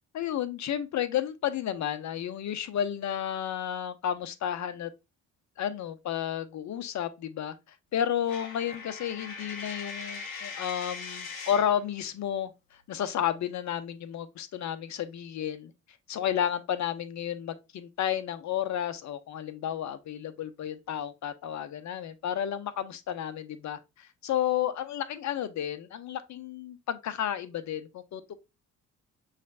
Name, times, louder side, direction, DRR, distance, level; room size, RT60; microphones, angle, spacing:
voice 1, 0.1-4.9 5.6-7.5 7.9-15.7 16.1-28.3, left 10 dB, 45° left, 0.8 m, -32 dB
Coin (dropping), 8.3-11.8, left 5 dB, 80° left, 0.9 m, -40 dB
6.5 x 3.2 x 2.5 m
figure-of-eight pair, 45°, 39 cm